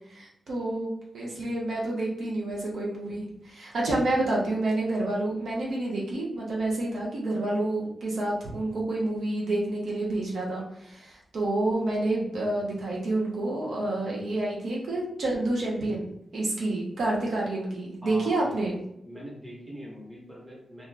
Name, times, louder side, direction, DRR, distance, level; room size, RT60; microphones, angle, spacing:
voice 1, 0.1-18.8, right 2 dB, 80° right, -4 dB, 0.8 m, -29 dB
voice 2, 18.0-18.6 19.0-20.9, equal, 20° right, -3 dB, 1.0 m, -42 dB
2.7 x 2.3 x 3.3 m, 0.79 s
wide cardioid pair, 110°, 0 cm